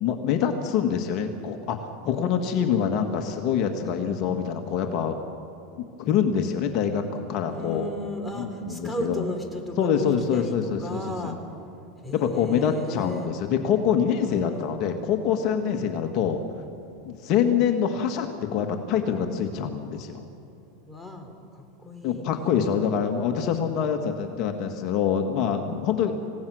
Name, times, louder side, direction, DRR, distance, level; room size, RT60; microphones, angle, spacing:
voice 1, 0.0-5.2 5.8-7.9 8.3-9.2 9.7-11.4 12.1-16.4 17.0-20.2 22.0-26.1, left 8 dB, 50° left, 5 dB, 1.7 m, -25 dB
voice 2, 7.5-11.4 12.0-13.3 14.2-14.7 15.6-15.9 20.8-22.7 23.4-23.8, left 1 dB, 5° left, 2 dB, 3.4 m, -35 dB
27.5 x 17.0 x 6.4 m, 2.9 s
supercardioid pair, 120°, 0 cm